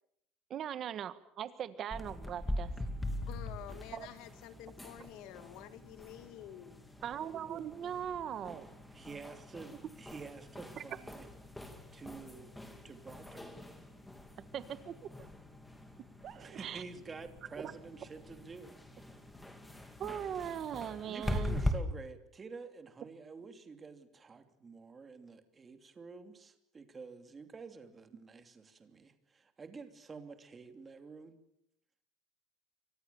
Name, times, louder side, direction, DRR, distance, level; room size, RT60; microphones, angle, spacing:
voice 1, 0.5-2.7 3.9-4.1 7.0-8.7 10.8-10.9 14.5-15.3 16.0-16.8 17.6-17.7 20.0-21.6, right 9 dB, 35° right, 12 dB, 1.5 m, -40 dB
sound 1, 1.9-21.7, left 1 dB, 5° left, 2.8 m, -42 dB
voice 2, 3.3-6.8, left 12 dB, 55° left, 11 dB, 2.2 m, -49 dB
voice 3, 8.9-11.3 11.9-12.5 12.8-13.6 16.3-19.1 21.1-31.4, right 4 dB, 15° right, 7 dB, 2.9 m, -49 dB
29.0 x 25.0 x 7.1 m, 0.76 s
cardioid pair, 160°, 0 cm